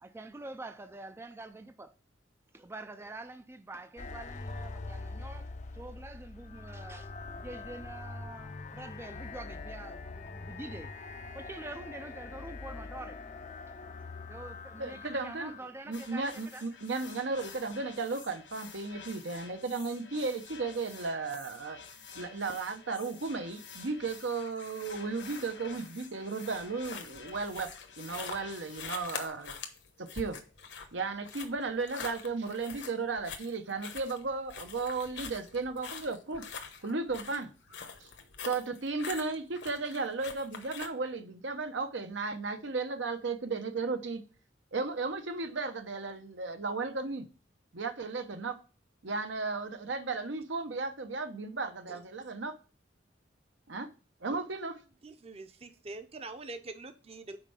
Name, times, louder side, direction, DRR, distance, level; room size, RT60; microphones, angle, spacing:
voice 1, 0.0-1.9 2.5-7.1 7.4-10.9 11.3-13.2 13.7-13.8 14.3-16.7, right 2 dB, 15° right, 0.3 m, -46 dB
sound 1, 4.0-15.6, left 3 dB, 40° left, 0.5 m, -43 dB
voice 2, 14.8-15.5 15.9-21.8 22.1-27.7 28.0-29.5 30.0-30.4 30.9-36.4 36.8-37.5 38.0-38.1 38.5-44.2 44.7-47.3 47.7-48.6 49.0-52.5 53.7-53.9 54.2-54.8, right 3 dB, 80° right, 0.9 m, -35 dB
sound 2, 15.9-29.3, left 6 dB, 80° left, 1.8 m, -50 dB
sound 3, 26.5-40.9, left 6 dB, 65° left, 1.0 m, -44 dB
voice 3, 55.0-57.4, right 3 dB, 35° right, 0.7 m, -44 dB
5.9 x 4.5 x 5.6 m
head